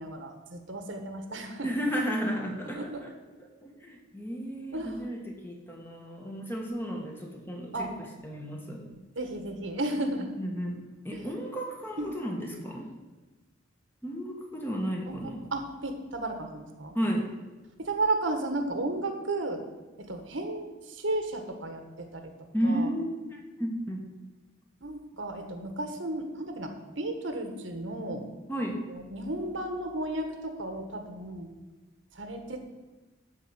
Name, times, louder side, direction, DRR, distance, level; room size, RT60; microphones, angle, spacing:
voice 1, 0.0-1.7 2.7-3.0 4.7-5.0 7.7-7.9 8.9-10.3 11.1-11.2 12.0-12.1 15.1-16.9 17.8-19.6 20.0-22.3 22.6-22.9 24.8-28.2 28.9-31.5 32.1-32.7, right 2 dB, 70° right, 6 dB, 1.4 m, -34 dB
voice 2, 1.6-3.1 3.6-8.8 10.4-10.8 11.0-12.8 14.0-15.4 16.9-17.3 22.5-24.0 28.5-28.8, equal, 10° left, 0 dB, 1.5 m, -33 dB
12.5 x 4.7 x 8.1 m, 1.2 s
head